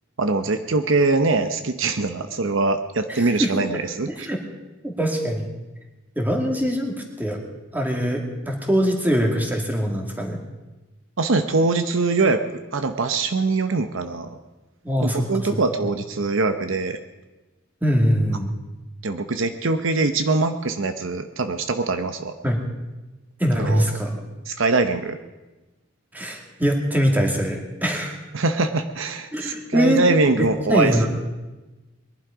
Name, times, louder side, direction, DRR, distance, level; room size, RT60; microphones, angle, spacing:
voice 1, 0.2-4.3 11.2-12.4 12.7-14.3 15.0-17.0 19.0-22.3 23.6-23.9 24.5-25.2 28.3-31.1, right 3 dB, 65° right, 8 dB, 0.8 m, -22 dB
voice 2, 3.1-3.5 4.1-4.4 4.8-5.5 6.2-7.4 7.7-10.4 14.8-15.6 17.8-18.5 22.4-22.6 23.4-24.1 26.1-28.1 29.3-30.0 30.4-31.1, equal, 10° right, 1 dB, 2.2 m, -23 dB
21.0 x 11.5 x 5.0 m, 1.1 s
head